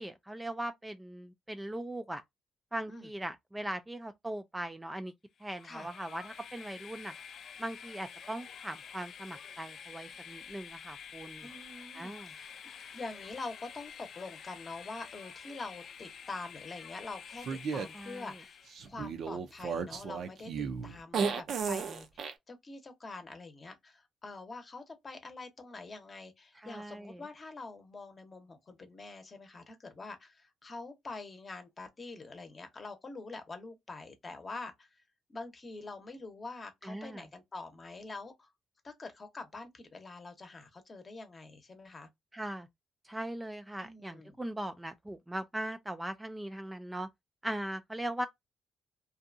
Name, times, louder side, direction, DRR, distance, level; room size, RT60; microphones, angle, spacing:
voice 1, 0.0-2.2 2.7-5.1 5.4-7.2 7.6-11.5 11.9-12.3 17.9-18.3 26.6-27.2 36.8-37.3 42.3-42.7 43.0-47.1 47.4-48.3, right 1 dB, 10° right, 0.3 m, -39 dB
Train, 5.4-18.9, left 7 dB, 60° left, 0.4 m, -49 dB
voice 2, 11.4-12.5 12.9-35.0 35.3-38.5 38.8-42.1 43.8-44.4, left 3 dB, 35° left, 0.8 m, -45 dB
sound 1, 17.4-17.9 18.7-22.3, right 5 dB, 65° right, 0.5 m, -34 dB
2.6 x 2.3 x 2.5 m
cardioid pair, 90°, 0 cm